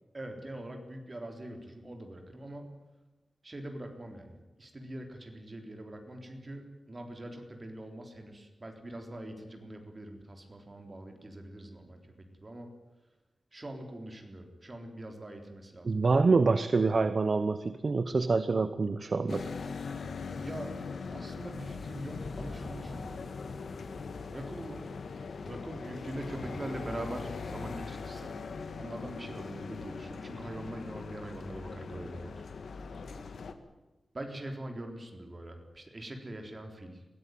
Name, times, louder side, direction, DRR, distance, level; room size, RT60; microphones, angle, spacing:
voice 1, 0.1-2.7 3.4-12.7 13.5-15.9 20.4-20.8 21.1-23.3 24.3-24.9 25.4-28.4 28.8-32.4 34.1-37.0, right 1 dB, 30° right, 4 dB, 3.8 m, -43 dB
voice 2, 15.8-19.5, right 4 dB, 50° right, 12 dB, 0.9 m, -26 dB
sound 1, 19.3-33.5, left 5 dB, 85° left, 1.9 m, -41 dB
sound 2, 21.5-25.2 27.1-27.4, left 3 dB, 50° left, 2.0 m, -46 dB
22.5 x 17.0 x 9.4 m, 1.1 s
wide cardioid pair, 130°, 0 cm